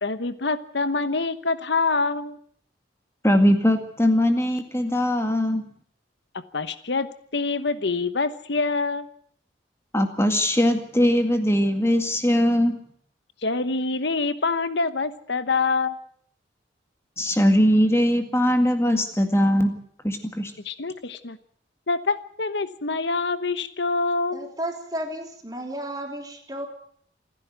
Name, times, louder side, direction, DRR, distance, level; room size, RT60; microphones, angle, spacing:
voice 1, 0.0-2.4 6.5-7.1 7.3-9.1 13.4-16.0 20.6-21.4 21.9-24.5, left 3 dB, 75° left, 13 dB, 1.1 m, -25 dB
voice 2, 3.2-5.6 9.9-12.8 17.2-19.7 20.0-20.5, equal, 15° left, 6 dB, 2.0 m, -20 dB
voice 3, 24.3-26.7, right 1 dB, 20° right, 3 dB, 3.4 m, -33 dB
28.0 x 10.5 x 9.3 m, 0.62 s
head